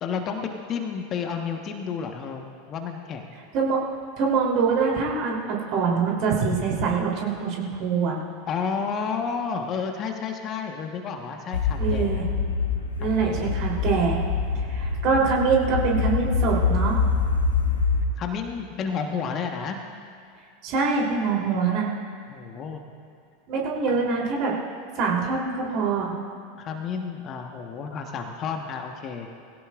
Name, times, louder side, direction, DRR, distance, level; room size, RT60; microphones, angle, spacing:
voice 1, 0.0-3.3 8.5-12.3 13.0-13.6 14.5-14.7 18.2-19.8 22.3-22.8 26.6-29.3, left 6 dB, 35° left, 4 dB, 1.3 m, -31 dB
voice 2, 3.5-3.8 4.2-8.2 11.8-12.3 13.0-14.2 14.5-17.0 20.6-21.9 23.5-24.5 25.0-26.1, right 5 dB, 45° right, -2 dB, 3.4 m, -24 dB
sound 1, 11.5-18.0, left 5 dB, 80° left, 1.4 m, -25 dB
21.0 x 17.0 x 2.5 m, 2.4 s
figure-of-eight pair, 85°, 0 cm